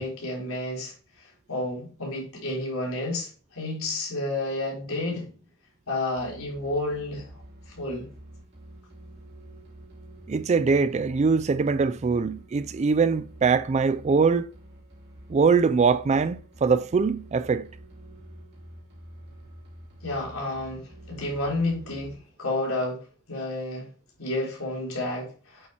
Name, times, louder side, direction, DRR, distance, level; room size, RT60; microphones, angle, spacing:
voice 1, 0.0-5.3 5.9-7.3 7.7-8.1 20.0-23.9 24.2-25.7, left 2 dB, 80° left, 3.9 m, -31 dB
sound 1, 6.2-22.2, right 1 dB, 55° right, 3.2 m, -47 dB
voice 2, 10.3-14.5 15.3-17.7, right 5 dB, 30° right, 0.3 m, -22 dB
8.5 x 7.0 x 2.9 m
head